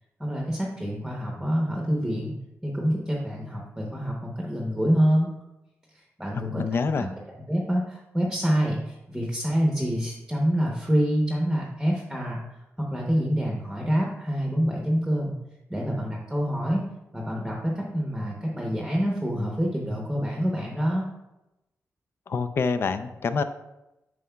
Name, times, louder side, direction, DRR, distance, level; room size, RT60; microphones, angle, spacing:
voice 1, 0.2-2.3 2.6-5.3 6.2-7.1 7.5-12.4 12.8-15.3 15.7-16.8 17.1-21.1, equal, 5° right, -1 dB, 0.8 m, -26 dB
voice 2, 6.3-7.1 22.3-23.4, left 5 dB, 50° left, 10 dB, 0.4 m, -26 dB
9.4 x 6.2 x 2.3 m, 0.94 s
wide cardioid pair, 165°, 5 cm